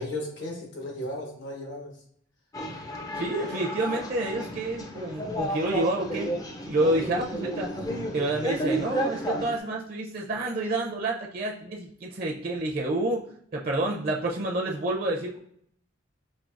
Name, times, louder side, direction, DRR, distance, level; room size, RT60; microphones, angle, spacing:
voice 1, 0.0-2.0 7.6-8.4, left 1 dB, 65° left, 1 dB, 1.1 m, -36 dB
sound 1, 2.5-9.6, equal, 20° left, 0.4 m, -32 dB
voice 2, 3.2-6.3 6.7-7.7 8.1-13.2 13.5-15.4, right 2 dB, 50° right, -1 dB, 0.5 m, -28 dB
5.2 x 2.7 x 2.4 m, 0.66 s
head